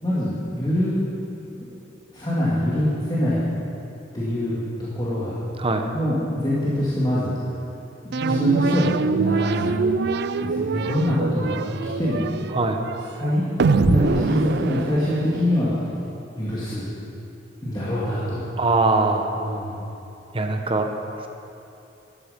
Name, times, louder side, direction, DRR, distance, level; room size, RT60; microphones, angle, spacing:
voice 1, 0.0-1.0 1.5-1.6 2.1-3.4 4.1-5.4 5.9-7.3 8.0-9.8 10.4-11.6 12.0-12.3 13.1-15.7 16.3-16.9 17.6-18.4 19.3-19.7, left 1 dB, 25° left, -10 dB, 2.5 m, -24 dB
sound 1, 8.1-15.6, right 4 dB, 65° right, 0.4 m, -24 dB
voice 2, 18.6-19.3 20.3-20.9, right 3 dB, 30° right, 4 dB, 1.1 m, -21 dB
14.0 x 12.5 x 5.3 m, 2.9 s
head